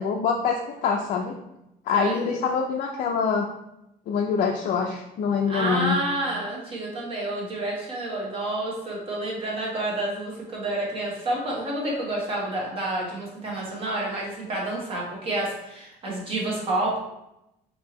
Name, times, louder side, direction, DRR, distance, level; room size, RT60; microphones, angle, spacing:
voice 1, 0.0-1.3 1.9-3.5 4.1-6.0, left 6 dB, 50° left, 0 dB, 0.4 m, -25 dB
voice 2, 1.9-2.3 5.5-17.0, right 1 dB, 30° right, -3 dB, 1.1 m, -29 dB
4.4 x 2.7 x 3.0 m, 0.87 s
cardioid pair, 175°, 17 cm